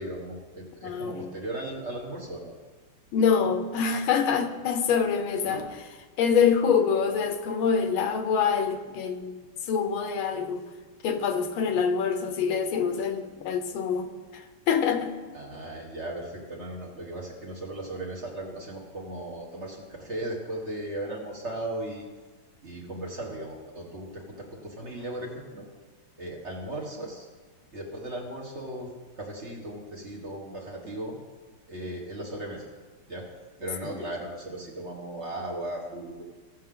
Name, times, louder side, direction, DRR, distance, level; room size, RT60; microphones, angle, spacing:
voice 1, 0.0-2.5 5.5-5.7 15.3-22.0 22.6-25.7 26.2-27.3 27.7-31.2 31.7-32.7 33.1-33.3 33.6-36.2, right 1 dB, 35° right, -2 dB, 1.4 m, -37 dB
voice 2, 0.8-1.3 3.1-5.6 6.2-10.7 11.0-15.2, left 6 dB, 75° left, 8 dB, 1.5 m, -25 dB
16.0 x 6.6 x 3.7 m, 1.3 s
omnidirectional pair, 2.3 m